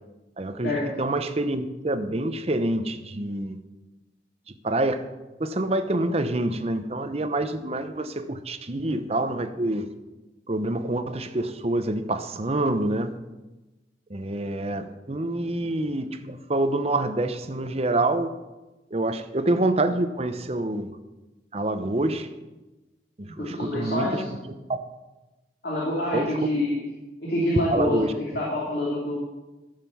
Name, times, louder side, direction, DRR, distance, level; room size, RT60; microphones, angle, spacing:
voice 1, 0.4-0.7 1.0-3.6 4.6-5.0 5.4-9.9 10.5-13.1 14.1-18.3 18.9-20.9 21.5-22.3 23.2-24.2 26.1-26.6 27.7-28.1, right 2 dB, 35° right, 10 dB, 0.8 m, -26 dB
voice 2, 23.4-24.3 25.6-26.8 27.2-28.0 28.3-29.2, left 1 dB, 60° left, -5 dB, 2.9 m, -26 dB
13.5 x 6.6 x 7.1 m, 1.1 s
head